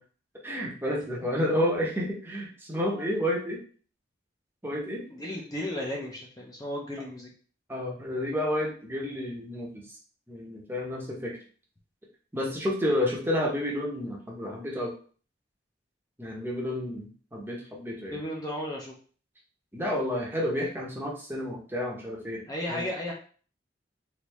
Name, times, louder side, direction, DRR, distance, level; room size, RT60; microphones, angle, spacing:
voice 1, 0.4-3.6 4.6-5.0 7.7-9.9 10.3-11.4 12.3-14.9 16.2-18.2 19.7-22.4 22.7-22.8, left 1 dB, 10° right, -2 dB, 0.8 m, -30 dB
voice 2, 5.1-7.3 18.1-18.9 22.5-23.1, left 1 dB, 20° left, -2 dB, 0.6 m, -34 dB
3.3 x 2.6 x 3.0 m, 0.42 s
head